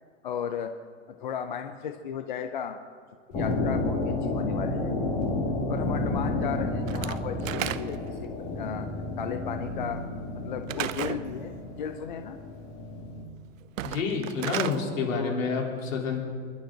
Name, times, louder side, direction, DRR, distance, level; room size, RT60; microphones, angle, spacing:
voice 1, 0.2-0.7 1.1-2.8 3.3-4.9 5.7-8.3 8.6-8.9 9.2-10.0 10.3-12.4 15.1-15.4, left 8 dB, 40° left, 7 dB, 0.6 m, -35 dB
sound 1, 3.3-13.2, left 2 dB, 20° left, 2.1 m, -31 dB
Slam / Wood, 6.9-8.2 10.7-11.3 13.6-14.8, right 12 dB, 85° right, 0.8 m, -33 dB
voice 2, 13.8-16.2, left 5 dB, 85° left, 0 dB, 3.8 m, -29 dB
27.5 x 12.0 x 3.9 m, 2.2 s
supercardioid pair, 180°, 39 cm